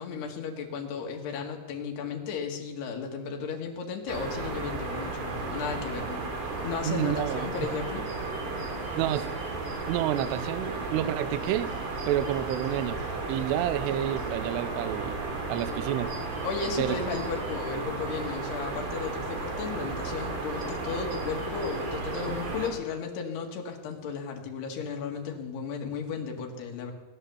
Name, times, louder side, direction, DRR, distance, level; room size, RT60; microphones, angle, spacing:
voice 1, 0.0-6.2 6.6-8.0 16.4-26.9, left 6 dB, 65° left, 2 dB, 3.6 m, -34 dB
sound 1, 4.1-22.7, right 3 dB, 60° right, 4.4 m, -34 dB
voice 2, 6.8-7.5 9.0-9.3 9.9-11.7 12.1-13.0 13.3-15.2 15.5-16.1 16.8-17.0, right 12 dB, 80° right, 12 dB, 2.5 m, -29 dB
18.5 x 10.0 x 7.0 m, 1.2 s
omnidirectional pair, 5.5 m